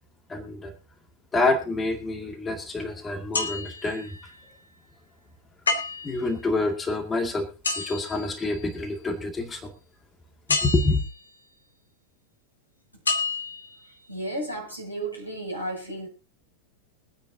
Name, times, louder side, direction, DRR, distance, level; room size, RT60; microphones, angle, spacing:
voice 1, 0.3-0.7 1.3-4.2 6.0-7.5 7.8-9.7 10.5-11.0, left 2 dB, 15° left, 2.2 m, -27 dB
sound 1, 3.3-4.3 5.7-6.3 7.6-8.9 10.5-11.3 13.0-13.7 14.3-14.4, left 4 dB, 75° left, 2.4 m, -29 dB
voice 2, 14.1-16.1, right 1 dB, 90° left, 6.9 m, -33 dB
23.5 x 9.4 x 2.8 m
figure-of-eight pair, 90°, 0 cm